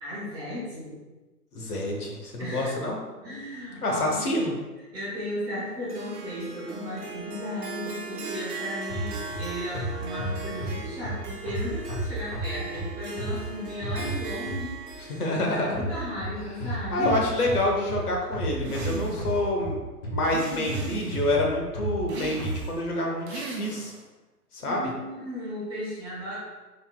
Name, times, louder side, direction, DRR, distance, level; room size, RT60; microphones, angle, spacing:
voice 1, 0.0-1.0 2.4-2.7 3.2-4.5 4.9-17.2 24.6-26.4, equal, 10° right, -11 dB, 0.9 m, -35 dB
voice 2, 1.5-3.0 3.8-4.5 15.1-15.7 16.9-19.8 20.1-23.9 24.5-24.9, left 1 dB, 70° left, 0 dB, 1.1 m, -27 dB
Harp, 5.9-17.1, right 3 dB, 70° right, 0.9 m, -39 dB
sound 1, 8.9-15.0 15.7-22.6, right 1 dB, 45° left, 1.2 m, -34 dB
sound 2, 18.6-19.4 20.3-21.3 22.1-22.8 23.3-24.1, right 4 dB, 45° right, 0.7 m, -37 dB
4.0 x 3.6 x 2.4 m, 1.2 s
hypercardioid pair, 140°, 48 cm